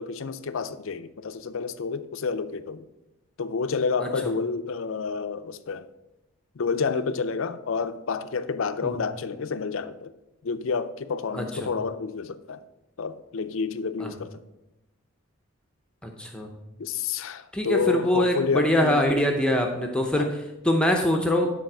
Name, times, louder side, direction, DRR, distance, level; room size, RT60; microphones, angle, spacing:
voice 1, 0.0-2.9 3.4-5.9 6.6-10.1 10.4-12.6 13.0-14.3 16.8-19.0 20.2-20.3, left 5 dB, 65° left, 0.5 m, -29 dB
voice 2, 11.3-11.7 14.0-14.1 16.0-16.5 17.5-21.5, left 1 dB, 5° left, 0.6 m, -24 dB
10.5 x 4.1 x 6.0 m
head